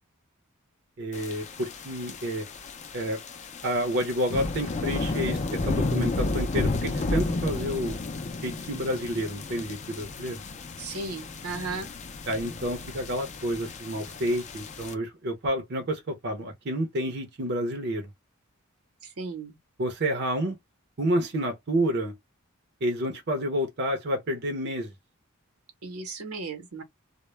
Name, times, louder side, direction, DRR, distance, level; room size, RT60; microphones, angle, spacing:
voice 1, 1.0-2.4 2.9-3.2 3.6-8.0 8.4-10.4 12.3-18.1 19.8-20.6 21.0-22.1 22.8-24.9, equal, 50° right, 0.6 m, -29 dB
sound 1, 1.1-14.9, left 3 dB, 35° left, 0.4 m, -32 dB
voice 2, 10.8-11.9 19.2-19.6 25.8-26.8, right 3 dB, 90° right, 0.8 m, -35 dB
2.2 x 2.0 x 3.0 m
head